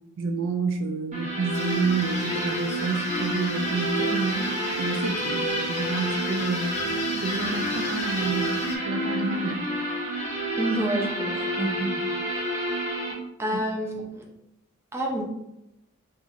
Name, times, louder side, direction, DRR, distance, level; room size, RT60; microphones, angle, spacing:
voice 1, 0.2-6.7 7.2-8.6 8.9-9.7 13.5-13.6, right 4 dB, 65° right, 5 dB, 0.4 m, -29 dB
sound 1, 1.1-13.1, right 1 dB, 35° right, 1.1 m, -29 dB
sound 2, 1.5-8.8, left 2 dB, 35° left, 0.7 m, -34 dB
voice 2, 10.6-12.0 13.4-14.2 14.9-15.2, right 1 dB, 10° right, -2 dB, 0.6 m, -28 dB
4.5 x 2.4 x 2.5 m, 0.86 s
head